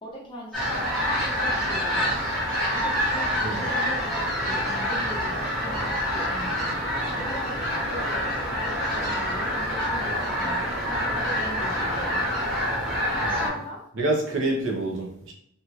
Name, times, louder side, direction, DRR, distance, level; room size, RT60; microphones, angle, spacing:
voice 1, 0.0-2.2 2.7-4.1 4.5-6.6 7.2-10.7 11.1-12.4 13.3-13.8, equal, 20° left, -2 dB, 0.6 m, -39 dB
sound 1, 0.5-13.5, equal, ahead, 1.2 m, -26 dB
voice 2, 13.2-13.6 13.9-15.3, right 2 dB, 60° right, -1 dB, 0.7 m, -27 dB
2.9 x 2.8 x 2.4 m, 0.73 s
head